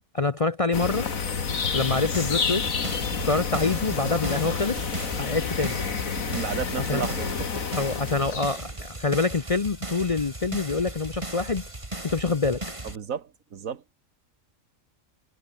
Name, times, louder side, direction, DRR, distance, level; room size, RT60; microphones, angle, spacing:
voice 1, 0.1-1.1 1.7-2.7 3.2-4.9 5.2-5.8 6.9-7.0 7.8-11.6 12.0-12.6, left 3 dB, 35° left, 0.6 m, -26 dB
sound 1, 0.7-8.6, left 5 dB, 85° left, 2.4 m, -29 dB
sound 2, 1.8-13.0, right 2 dB, 25° right, 3.0 m, -37 dB
voice 2, 6.2-7.6 8.3-8.4 12.8-13.9, right 7 dB, 80° right, 1.8 m, -33 dB
omnidirectional pair, 1.4 m